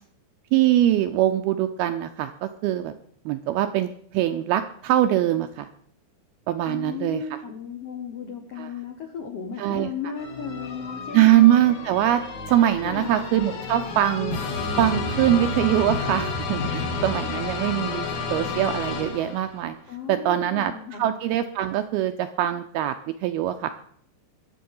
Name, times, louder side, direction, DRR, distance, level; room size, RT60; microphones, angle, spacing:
voice 1, 0.5-2.9 3.3-5.7 6.5-7.2 8.6-8.7 9.6-9.9 11.1-12.2 12.5-14.4 14.8-19.8 20.1-22.9 23.2-23.7, right 12 dB, 80° right, 8 dB, 2.2 m, -22 dB
voice 2, 6.7-11.5 12.8-13.2 19.9-21.2, left 6 dB, 75° left, 3 dB, 1.4 m, -35 dB
sound 1, 10.2-19.7, left 4 dB, 55° left, 2.6 m, -30 dB
22.0 x 7.7 x 5.4 m, 0.63 s
omnidirectional pair, 5.0 m